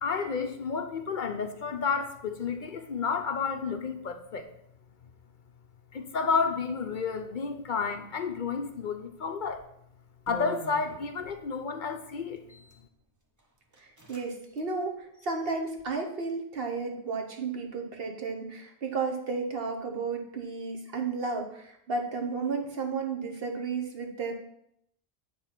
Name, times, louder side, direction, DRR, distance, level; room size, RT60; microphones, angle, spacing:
voice 1, 0.0-4.5 5.9-9.6 10.3-12.4, left 5 dB, 55° left, 7 dB, 0.7 m, -31 dB
sound 1, 9.5-9.7 10.3-11.4 12.4-12.8 13.4-13.5 13.7-14.2 14.5-14.6 15.1-15.8, equal, 20° right, 0.9 m, -43 dB
voice 2, 13.8-24.3, right 4 dB, 70° right, 4 dB, 1.2 m, -33 dB
8.5 x 3.4 x 5.8 m, 0.74 s
omnidirectional pair, 1.0 m